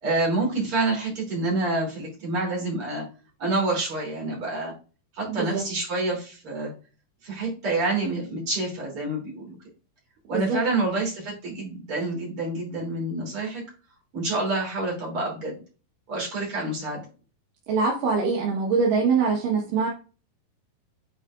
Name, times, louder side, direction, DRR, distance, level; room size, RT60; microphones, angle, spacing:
voice 1, 0.0-3.1 3.4-4.7 5.1-6.7 7.2-9.6 10.3-13.6 14.1-15.6 16.1-17.0, right 2 dB, 40° right, -3 dB, 3.7 m, -27 dB
voice 2, 5.3-5.6 10.3-10.6 17.7-19.9, right 5 dB, 75° right, -2 dB, 2.9 m, -23 dB
8.9 x 4.8 x 2.5 m, 0.34 s
omnidirectional pair, 3.9 m